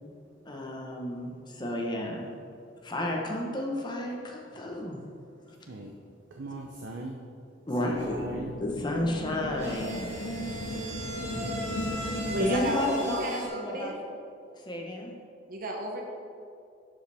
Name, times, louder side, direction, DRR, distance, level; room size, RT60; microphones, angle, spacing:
voice 1, 0.4-2.3 2.8-5.0 7.7-8.3 8.6-10.2 12.1-13.9 14.6-15.1, left 1 dB, 25° left, 0 dB, 1.0 m, -32 dB
voice 2, 6.4-7.2 7.8-8.5 11.2-11.7, right 2 dB, 85° right, 0 dB, 0.7 m, -39 dB
sound 1, 7.9-12.9, equal, 80° left, 0.8 m, -36 dB
sound 2, 9.3-13.5, equal, 35° right, 1.9 m, -38 dB
voice 3, 12.3-14.0 15.5-16.0, right 1 dB, 50° right, 0 dB, 0.8 m, -32 dB
11.0 x 5.2 x 3.5 m, 2.5 s
head